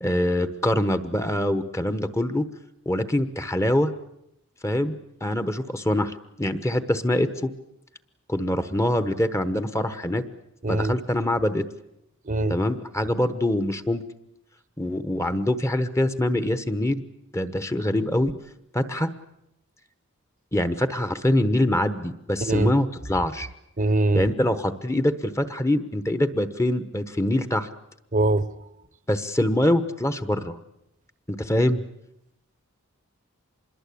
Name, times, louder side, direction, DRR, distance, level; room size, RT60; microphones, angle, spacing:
voice 1, 0.0-2.4 2.9-3.9 4.6-5.0 5.2-7.5 8.3-10.2 10.7-11.6 12.5-14.0 14.8-17.0 17.3-18.3 18.7-19.1 20.5-23.5 24.1-27.7 29.1-30.6 31.3-31.8, left 1 dB, 15° left, 11 dB, 1.1 m, -24 dB
voice 2, 10.6-10.9 12.2-12.6 22.4-22.7 23.8-24.3 28.1-28.5, right 2 dB, 35° right, 14 dB, 1.0 m, -22 dB
26.0 x 21.5 x 8.5 m, 0.80 s
head